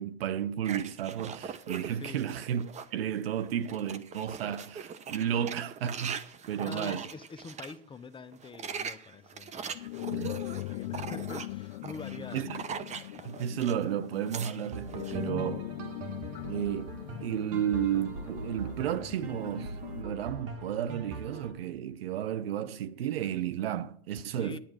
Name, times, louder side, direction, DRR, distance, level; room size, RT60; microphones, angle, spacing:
voice 1, 0.0-2.6 2.9-6.1 6.5-7.1 10.1-10.3 12.3-12.6 13.2-15.7 16.5-24.6, right 9 dB, 85° right, 0.8 m, -33 dB
sound 1, 0.6-3.0 3.4-7.7 8.3-13.8 14.1-15.2, right 6 dB, 25° right, 0.8 m, -41 dB
voice 2, 6.6-12.5 24.4-24.6, left 4 dB, 15° left, 0.7 m, -45 dB
sound 2, 9.7-20.0, left 18 dB, 65° left, 0.5 m, -40 dB
sound 3, 14.7-21.5, right 3 dB, 50° right, 1.9 m, -42 dB
10.0 x 10.0 x 6.3 m
hypercardioid pair, 110°, 29 cm